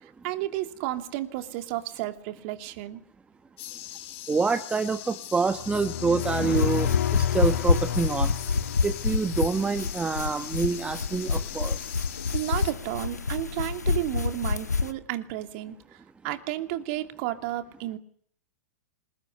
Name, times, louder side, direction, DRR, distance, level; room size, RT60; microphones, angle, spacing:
voice 1, 0.2-3.0 12.3-16.0 16.2-18.0, right 14 dB, 50° right, 8 dB, 2.9 m, -32 dB
sound 1, 3.6-12.7, left 13 dB, 55° left, 3.8 m, -41 dB
voice 2, 4.3-8.3 8.8-11.8, right 4 dB, 10° right, 9 dB, 1.4 m, -27 dB
sound 2, 5.6-9.4, left 10 dB, 70° left, 2.4 m, -30 dB
sound 3, 6.2-14.9, left 4 dB, 85° left, 1.4 m, -28 dB
27.0 x 21.0 x 9.8 m, 0.63 s
figure-of-eight pair, 105°, 9 cm